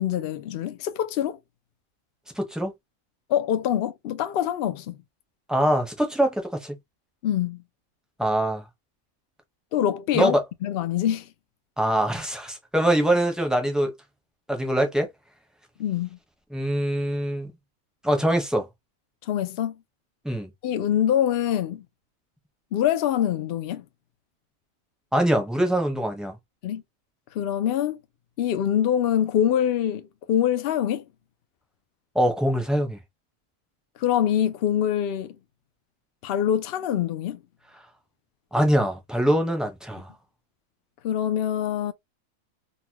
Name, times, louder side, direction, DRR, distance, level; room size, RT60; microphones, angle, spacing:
voice 1, 0.0-1.4 3.3-5.0 7.2-7.6 9.7-11.3 15.8-16.2 19.2-19.8 20.6-21.8 22.7-23.8 26.6-26.8 27.3-28.0 28.4-31.0 34.0-35.4 36.2-37.4 41.0-41.9, left 10 dB, 65° left, 0.5 m, -24 dB
voice 2, 2.4-2.7 5.5-6.7 8.2-8.6 10.1-10.4 11.8-13.9 14.5-15.1 16.5-17.5 18.0-18.7 20.2-20.5 25.1-26.4 32.1-33.0 38.5-40.1, right 1 dB, ahead, 0.6 m, -23 dB
4.0 x 2.2 x 2.8 m
omnidirectional pair, 1.5 m